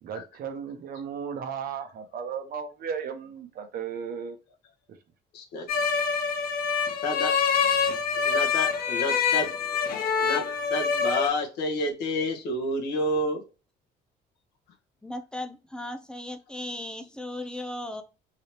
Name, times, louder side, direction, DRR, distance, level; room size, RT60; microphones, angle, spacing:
voice 1, 0.0-4.4, right 7 dB, 60° right, 6 dB, 1.0 m, -35 dB
voice 2, 5.3-5.7 7.0-7.4 8.1-9.8 10.2-13.4, left 1 dB, 80° left, 2 dB, 1.4 m, -30 dB
sound 1, 5.7-11.3, left 6 dB, 60° left, 0.8 m, -25 dB
voice 3, 15.0-18.0, left 1 dB, 5° left, 7 dB, 0.6 m, -36 dB
3.9 x 3.1 x 2.9 m, 0.31 s
cardioid pair, 110°, 17 cm